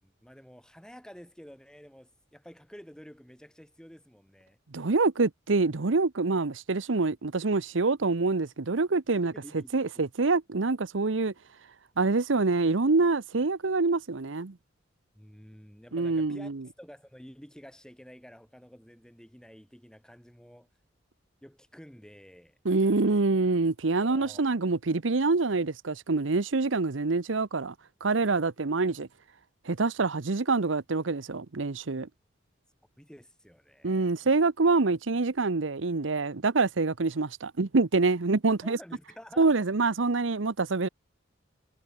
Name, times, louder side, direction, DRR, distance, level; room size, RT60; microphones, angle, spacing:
voice 1, 0.0-4.6 9.3-9.7 15.1-16.5 16.8-20.7 21.4-23.0 24.0-24.4 33.0-34.1 38.5-39.7, equal, 5° left, 5.3 m, -50 dB
voice 2, 4.7-9.3 9.7-11.3 12.0-14.5 15.9-16.6 22.6-27.7 28.0-29.1 29.6-32.1 33.8-38.8 39.4-40.9, right 3 dB, 75° right, 0.9 m, -26 dB
head